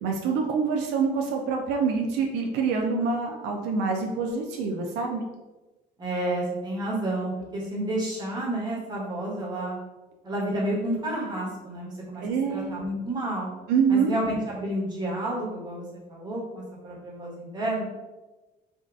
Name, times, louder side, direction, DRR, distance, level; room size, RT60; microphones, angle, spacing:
voice 1, 0.0-5.2 12.2-12.7 13.7-14.1, right 5 dB, 85° right, 1 dB, 0.4 m, -26 dB
voice 2, 6.0-9.8 10.2-12.2 12.5-13.5 13.9-15.8 16.1-17.8, right 1 dB, 25° right, -6 dB, 1.3 m, -30 dB
3.6 x 2.4 x 2.4 m, 1.1 s
cardioid pair, 110°, 17 cm